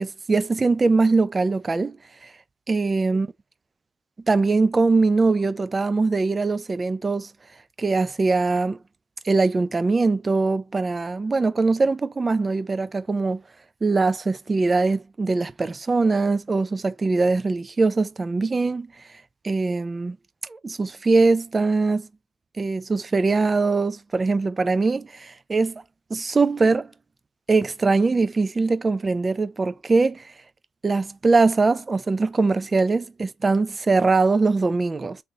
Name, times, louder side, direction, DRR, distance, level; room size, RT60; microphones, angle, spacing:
voice 1, 0.0-2.0 2.2-2.3 2.7-3.3 4.3-7.3 7.8-8.8 9.2-13.4 13.8-18.9 19.4-20.2 20.5-22.1 22.6-25.8 26.1-26.9 27.5-30.2 30.8-35.2, right 3 dB, 25° right, 0.4 m, -22 dB
3.4 x 2.6 x 2.8 m
cardioid pair, 90°, 0 cm